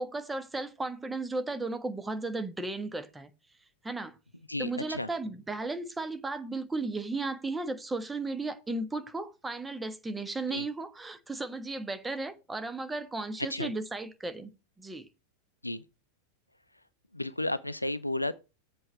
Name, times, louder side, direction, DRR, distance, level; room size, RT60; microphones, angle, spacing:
voice 1, 0.0-3.3 3.8-4.1 4.6-15.1, right 2 dB, 10° right, 1.3 m, -35 dB
voice 2, 4.5-5.1 10.5-10.7 13.5-13.7 15.6-15.8 17.1-18.4, left 1 dB, 85° left, 0.6 m, -33 dB
7.8 x 4.5 x 6.7 m
figure-of-eight pair, 90°, 0 cm